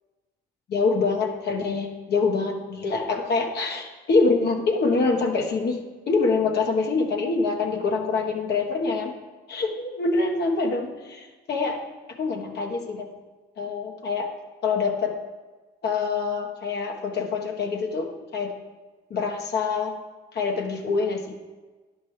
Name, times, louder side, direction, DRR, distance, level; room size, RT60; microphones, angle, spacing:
voice 1, 0.7-5.8 6.1-9.1 9.5-11.8 12.2-13.1 13.6-14.3 14.6-15.1 15.8-18.5 19.1-19.9 20.3-21.3, left 4 dB, 60° left, 2 dB, 1.4 m, -25 dB
10.5 x 5.3 x 4.9 m, 1.3 s
supercardioid pair, 75°, 19 cm